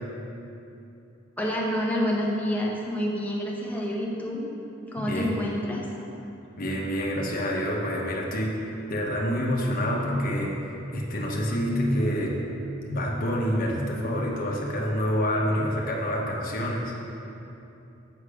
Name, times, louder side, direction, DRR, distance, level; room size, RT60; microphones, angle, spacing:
voice 1, 1.4-4.4 4.9-6.1, equal, 10° left, -3 dB, 1.0 m, -28 dB
voice 2, 5.0-5.4 6.6-8.6 8.9-10.5 10.9-12.4 12.9-16.9, equal, 45° left, -2 dB, 1.1 m, -27 dB
6.6 x 6.3 x 5.0 m, 2.8 s
head